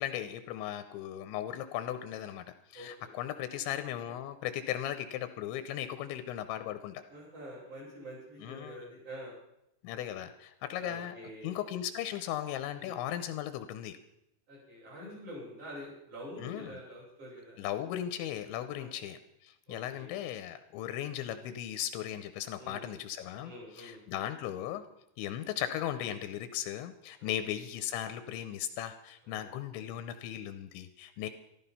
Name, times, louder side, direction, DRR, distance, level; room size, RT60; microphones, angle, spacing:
voice 1, 0.0-2.4 2.7-7.0 8.4-8.9 9.8-11.2 11.4-14.0 16.4-16.8 17.6-24.8 25.2-31.3, left 11 dB, 80° left, 10 dB, 3.0 m, -37 dB
voice 2, 2.7-3.1 5.8-5.9 7.1-9.3 10.8-11.5 12.8-13.0 14.5-17.6 18.7-19.0 19.7-20.1 22.6-22.9 23.4-24.0 27.2-27.3 29.2-29.4, equal, 40° right, -6 dB, 8.4 m, -46 dB
14.0 x 13.0 x 5.6 m, 0.81 s
omnidirectional pair, 5.4 m